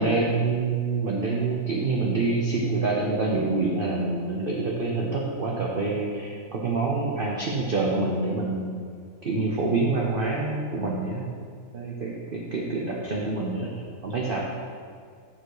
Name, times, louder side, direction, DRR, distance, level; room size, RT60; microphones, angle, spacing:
voice 1, 0.0-8.8 9.2-11.3 11.7-13.7 14.0-14.4, right 3 dB, 50° right, -2 dB, 0.7 m, -26 dB
6.8 x 6.2 x 4.7 m, 2.1 s
omnidirectional pair, 1.8 m